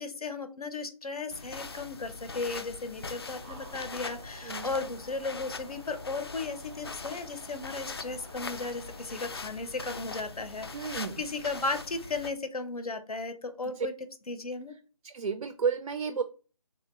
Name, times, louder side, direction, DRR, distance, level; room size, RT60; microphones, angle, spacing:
voice 1, 0.0-13.9 14.3-14.7, left 3 dB, 85° left, 9 dB, 0.6 m, -35 dB
sound 1, 1.3-12.3, left 4 dB, 45° left, 0.4 m, -42 dB
sound 2, 3.3-9.1, right 1 dB, 10° right, 0.5 m, -51 dB
voice 2, 10.7-11.2 13.6-13.9 15.0-16.2, right 6 dB, 75° right, 10 dB, 0.4 m, -32 dB
3.3 x 2.4 x 3.0 m, 0.36 s
figure-of-eight pair, 160°, 19 cm